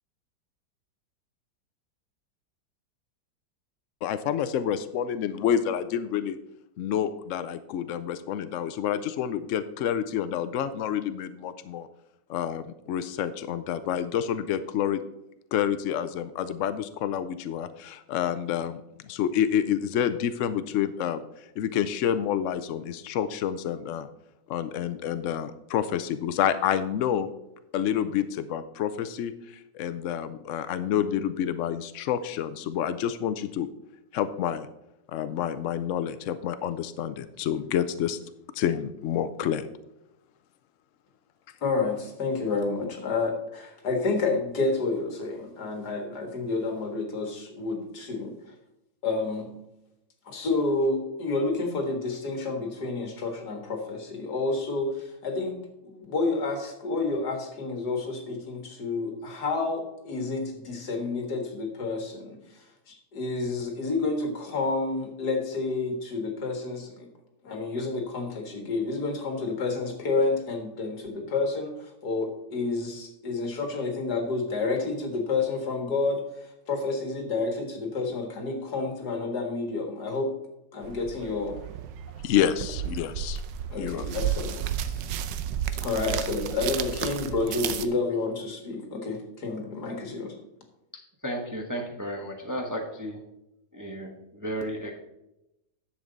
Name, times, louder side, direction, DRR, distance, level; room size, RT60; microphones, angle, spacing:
voice 1, 4.0-6.4 6.8-11.9 12.3-15.0 15.5-18.8 19.1-21.2 21.6-24.1 24.5-27.3 27.7-33.7 34.1-34.7 35.1-38.2 38.5-39.6 82.2-83.4 83.8-84.1, left 9 dB, 90° left, 12 dB, 0.6 m, -28 dB
voice 2, 41.6-48.3 49.0-49.5 50.3-67.1 67.4-80.3 80.7-81.6 83.7-85.1 85.8-90.3, left 3 dB, 60° left, 2 dB, 2.2 m, -29 dB
sound 1, 80.8-87.8, right 10 dB, 80° right, 1.3 m, -32 dB
voice 3, 91.2-93.2 93.7-95.0, equal, 15° right, 1 dB, 0.9 m, -33 dB
10.5 x 7.3 x 4.0 m, 0.89 s
omnidirectional pair, 1.9 m